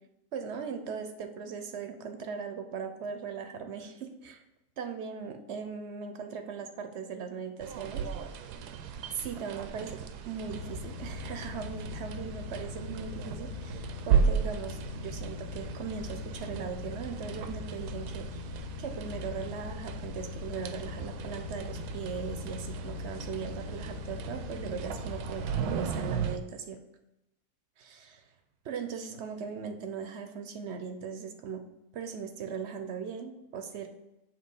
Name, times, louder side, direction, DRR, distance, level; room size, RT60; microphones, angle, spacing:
voice 1, 0.3-4.4 4.8-8.0 9.1-10.0 10.3-18.5 18.8-26.8 27.8-28.3 28.6-31.6 31.9-33.9, right 6 dB, 60° right, 6 dB, 0.7 m, -39 dB
sound 1, 7.6-26.4, right 7 dB, 85° right, 1.1 m, -35 dB
sound 2, 10.4-26.0, left 5 dB, 55° left, 0.6 m, -41 dB
7.5 x 2.9 x 5.3 m, 0.92 s
omnidirectional pair, 1.7 m